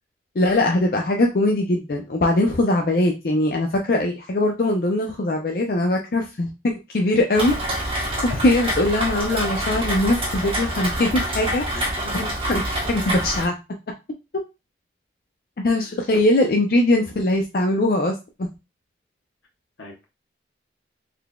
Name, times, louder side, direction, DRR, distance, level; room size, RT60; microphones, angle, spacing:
voice 1, 0.4-7.6 8.2-11.9 12.5-12.6 12.9-13.5 15.6-18.5, left 1 dB, 50° left, 2 dB, 0.4 m, -21 dB
Rain, 7.3-13.4, right 1 dB, 30° right, 1.0 m, -26 dB
voice 2, 11.7-12.3 16.1-16.2 19.8-20.0, left 2 dB, 85° left, 1 dB, 1.2 m, -37 dB
3.8 x 3.3 x 2.2 m, 0.26 s
head